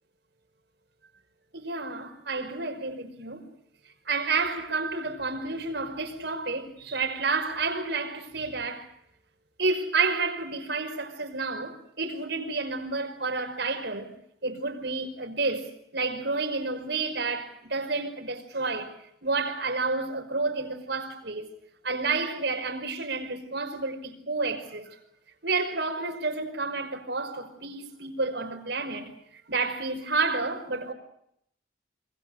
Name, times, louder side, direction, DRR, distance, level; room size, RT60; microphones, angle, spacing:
voice 1, 1.5-3.5 4.1-8.9 9.6-14.1 14.4-18.9 19.2-21.5 21.8-24.9 25.4-29.1 29.5-30.9, right 3 dB, 65° right, 5.5 m, -30 dB
26.5 x 25.5 x 6.6 m
head